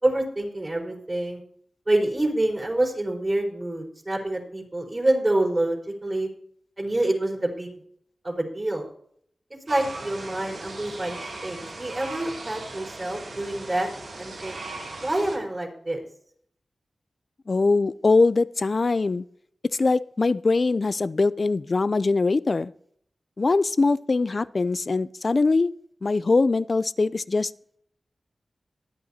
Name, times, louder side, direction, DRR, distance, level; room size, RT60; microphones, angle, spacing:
voice 1, 0.0-1.4 1.9-6.3 6.8-7.7 8.2-8.8 9.7-11.2 11.4-13.9 14.2-14.6 15.0-16.0, right 1 dB, 35° right, -1 dB, 4.4 m, -26 dB
sound 1, 9.7-15.4, right 2 dB, 85° right, 2.7 m, -38 dB
voice 2, 17.5-19.2 19.8-22.7 23.4-25.7 26.0-27.5, left 3 dB, 55° left, 17 dB, 0.4 m, -22 dB
22.5 x 8.5 x 2.8 m, 0.65 s
cardioid pair, 40°, 0 cm